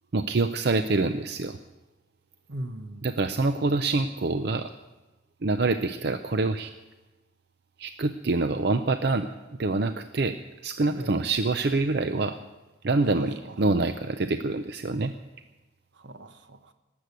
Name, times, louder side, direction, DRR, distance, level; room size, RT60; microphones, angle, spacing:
voice 1, 0.1-1.6 3.0-4.7 5.4-6.7 7.8-9.3 9.6-10.4 10.6-12.4 12.8-15.1, right 3 dB, 60° right, 9 dB, 0.6 m, -26 dB
voice 2, 2.5-3.0 10.9-11.1 13.1-13.5 16.0-16.7, right 1 dB, 75° right, 9 dB, 1.1 m, -39 dB
19.0 x 7.8 x 8.2 m, 1.1 s
head